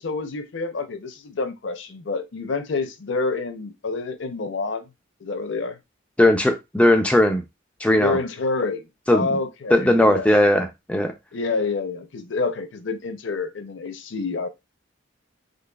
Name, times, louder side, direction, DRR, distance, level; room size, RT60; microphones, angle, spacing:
voice 1, 0.0-4.9 5.2-5.8 7.9-8.8 9.1-10.3 11.3-14.5, left 4 dB, 60° left, 0.6 m, -28 dB
voice 2, 6.2-7.4 7.8-8.2 9.1-9.2 9.7-11.1, left 1 dB, 5° left, 0.3 m, -18 dB
3.9 x 3.2 x 2.2 m
head